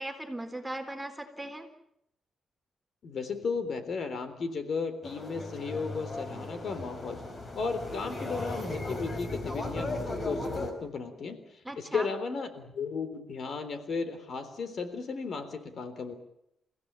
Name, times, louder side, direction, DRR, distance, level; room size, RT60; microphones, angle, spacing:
voice 1, 0.0-1.7 11.6-12.1, right 1 dB, 5° right, 4 dB, 3.9 m, -38 dB
voice 2, 3.0-7.2 7.5-16.1, left 5 dB, 60° left, 10 dB, 3.6 m, -35 dB
sound 1, 5.0-10.7, left 2 dB, 35° left, 5.5 m, -36 dB
30.0 x 16.0 x 9.0 m, 0.78 s
cardioid pair, 105°, 0 cm